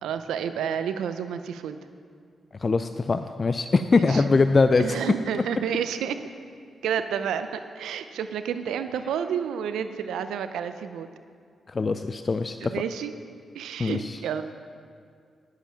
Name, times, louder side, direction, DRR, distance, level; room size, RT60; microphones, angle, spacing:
voice 1, 0.0-1.8 3.9-4.3 4.8-6.2 6.8-11.1 12.6-13.1 13.5-14.4, right 8 dB, 90° right, 10 dB, 0.5 m, -30 dB
voice 2, 2.6-4.9 11.7-12.6 13.8-14.2, left 4 dB, 40° left, 9 dB, 0.4 m, -22 dB
10.0 x 7.7 x 5.7 m, 2.2 s
cardioid pair, 55°, 0 cm